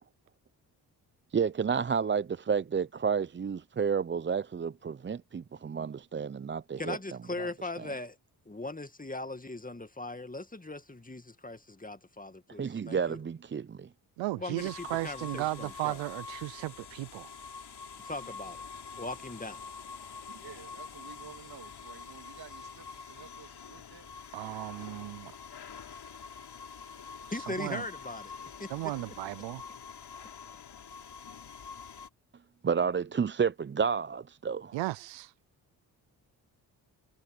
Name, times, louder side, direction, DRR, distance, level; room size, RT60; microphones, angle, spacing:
voice 1, 1.3-7.0 12.6-13.9 32.6-34.8, right 6 dB, 25° right, 0.6 m, -30 dB
voice 2, 6.8-8.2 8.5-13.2 14.4-16.0 18.0-18.6 18.9-19.7 27.3-28.3 28.6-28.7, left 2 dB, 20° left, 2.2 m, -39 dB
voice 3, 14.2-17.3 24.3-25.3 27.6-27.8 28.7-29.6 34.7-35.3, right 19 dB, 85° right, 0.7 m, -35 dB
sound 1, 14.6-32.1, left 5 dB, 60° left, 3.4 m, -46 dB
voice 4, 20.2-24.1, right 7 dB, 55° right, 3.0 m, -51 dB
supercardioid pair, 45°, 44 cm